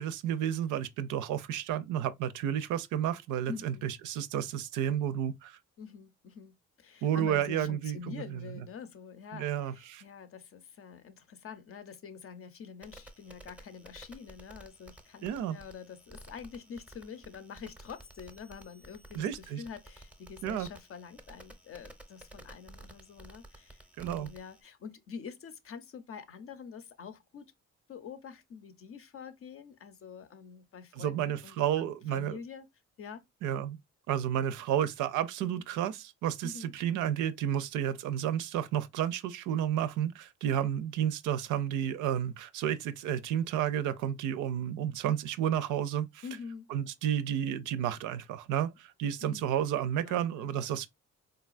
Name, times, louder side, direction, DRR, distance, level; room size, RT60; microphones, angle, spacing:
voice 1, 0.0-5.6 7.0-8.4 9.3-10.0 15.2-15.6 19.1-19.6 20.4-20.7 24.0-24.3 31.0-32.4 33.4-33.8 34.1-46.2 46.7-50.9, right 10 dB, 85° right, 0.5 m, -31 dB
voice 2, 3.5-3.9 5.8-27.5 27.9-32.7 33.0-33.2 35.4-35.6 36.4-36.7 46.2-46.7 49.2-49.5 50.0-50.9, left 6 dB, 45° left, 0.6 m, -46 dB
sound 1, 12.8-24.6, right 1 dB, 5° right, 0.6 m, -53 dB
3.9 x 2.3 x 2.4 m
cardioid pair, 90°, 30 cm